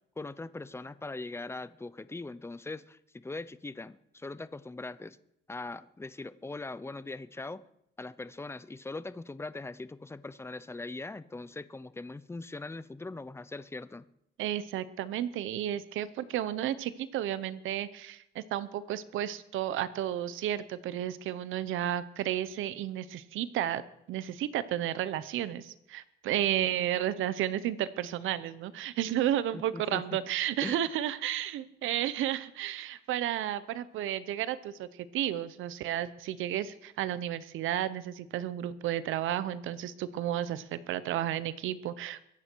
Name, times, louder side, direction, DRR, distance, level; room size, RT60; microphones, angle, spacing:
voice 1, 0.0-5.2 5.5-7.6 8.0-14.1 29.5-30.2 30.6-30.9, left 3 dB, 10° left, 16 dB, 0.6 m, -41 dB
voice 2, 14.4-23.8 24.1-42.2, right 12 dB, 85° right, 15 dB, 0.8 m, -32 dB
22.5 x 9.4 x 4.6 m, 0.79 s
cardioid pair, 90°, 20 cm